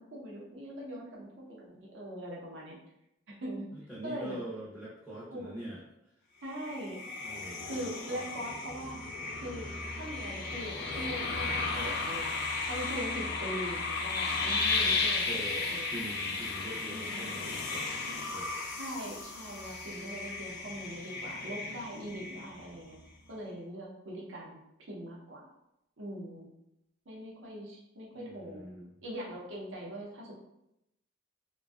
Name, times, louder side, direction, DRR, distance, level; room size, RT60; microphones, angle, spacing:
voice 1, 0.0-2.8 3.3-3.7 4.0-4.4 5.3-5.5 6.4-7.0 7.6-9.0 9.4-9.7 9.9-12.4 12.6-15.9 16.9-17.3 18.8-22.9 23.3-24.6 24.9-25.4 26.0-26.5 27.1-28.6 29.0-30.3, equal, 70° right, -3 dB, 0.7 m, -41 dB
voice 2, 3.7-5.8 7.2-8.4 14.7-14.9 15.3-18.6 28.1-29.0, right 1 dB, 5° right, -9 dB, 0.5 m, -44 dB
sound 1, 6.5-22.8, left 3 dB, 55° left, 0.4 m, -34 dB
2.5 x 2.2 x 2.3 m, 0.86 s
head